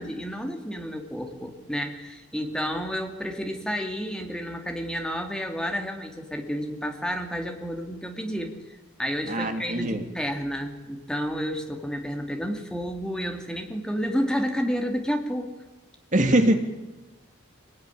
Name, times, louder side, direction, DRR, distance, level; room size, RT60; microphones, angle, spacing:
voice 1, 0.0-15.5 16.2-16.3, equal, 5° left, 3 dB, 2.6 m, -31 dB
voice 2, 9.3-10.0 16.1-16.5, right 1 dB, 35° right, 5 dB, 2.3 m, -22 dB
25.5 x 19.0 x 10.0 m, 1.1 s
head